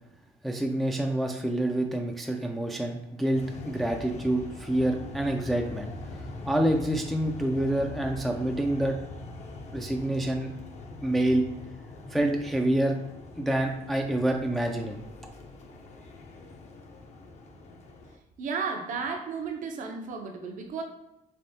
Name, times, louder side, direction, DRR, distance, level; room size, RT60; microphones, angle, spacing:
voice 1, 0.4-5.9 6.5-8.9 9.7-10.5 11.0-11.4 12.1-13.0 13.4-15.0, right 1 dB, ahead, 2 dB, 0.3 m, -27 dB
sound 1, 3.3-18.2, left 2 dB, 40° left, 0.6 m, -43 dB
voice 2, 18.4-20.8, right 5 dB, 50° right, 3 dB, 0.6 m, -33 dB
3.4 x 3.3 x 2.7 m, 0.93 s
cardioid pair, 110°, 17 cm